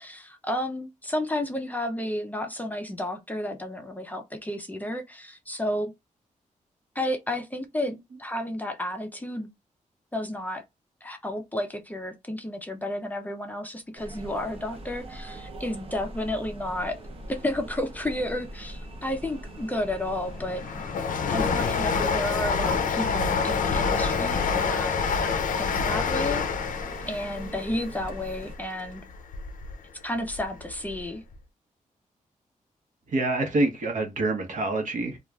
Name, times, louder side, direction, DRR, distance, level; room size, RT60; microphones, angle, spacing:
voice 1, 0.0-5.9 7.0-9.5 10.1-10.6 11.0-17.0 17.3-20.7 21.3-25.0 25.6-26.5 27.1-29.0 30.0-31.2, left 1 dB, 10° left, 0.4 m, -32 dB
sound 1, 14.0-28.6, right 1 dB, 45° right, 0.7 m, -42 dB
Train, 19.6-29.7 30.1-31.1 31.3-31.4, left 5 dB, 85° left, 0.5 m, -27 dB
voice 2, 33.1-35.2, right 2 dB, 70° right, 0.9 m, -26 dB
3.1 x 2.3 x 2.3 m
wide cardioid pair, 130°, 13 cm